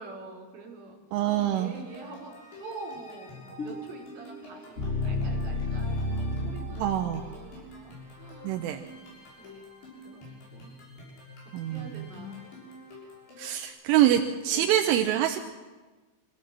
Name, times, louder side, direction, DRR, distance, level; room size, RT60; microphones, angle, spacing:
voice 1, 0.0-2.3 2.6-9.1 9.4-10.8 11.7-12.6 14.5-14.7, right 3 dB, 40° right, 0 dB, 5.8 m, -46 dB
voice 2, 1.1-1.7 6.8-7.4 8.4-8.8 11.5-12.0 13.4-15.4, right 11 dB, 85° right, 4 dB, 3.4 m, -25 dB
sound 1, 1.4-13.7, left 2 dB, 70° left, 8.7 m, -48 dB
sound 2, 3.6-7.7, left 1 dB, 45° left, 1.0 m, -32 dB
25.0 x 16.5 x 7.6 m, 1.3 s
omnidirectional pair, 5.6 m